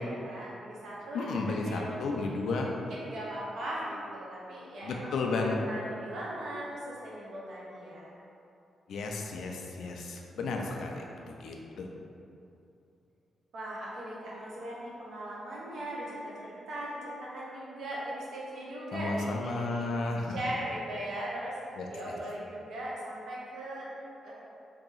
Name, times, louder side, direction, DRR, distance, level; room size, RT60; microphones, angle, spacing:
voice 1, 0.0-2.6 2.9-5.1 5.5-8.1 13.5-19.9 20.3-24.3, right 1 dB, 80° right, -6 dB, 0.9 m, -39 dB
voice 2, 1.1-2.7 4.8-5.6 8.9-11.9 18.9-20.4 21.8-22.2, left 3 dB, 80° left, 1 dB, 0.4 m, -33 dB
2.9 x 2.8 x 3.8 m, 2.7 s
cardioid pair, 125°, 0 cm